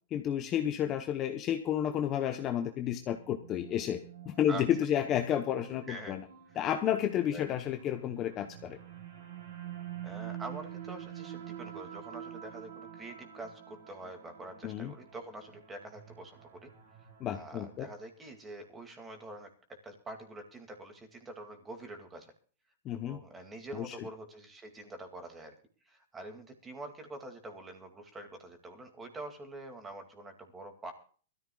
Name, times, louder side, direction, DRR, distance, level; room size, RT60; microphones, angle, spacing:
voice 1, 0.1-4.0 4.2-6.2 6.6-8.8 14.6-14.9 17.2-17.9 22.8-23.2 23.7-23.9, left 10 dB, 25° left, 6 dB, 0.8 m, -31 dB
sound 1, 3.0-18.3, right 10 dB, 60° right, 4.1 m, -47 dB
voice 2, 10.0-16.7 17.3-22.3 22.9-25.5 25.8-30.9, right 2 dB, 10° right, 5 dB, 2.2 m, -46 dB
23.0 x 13.5 x 2.3 m, 0.42 s
hypercardioid pair, 160°, 0 cm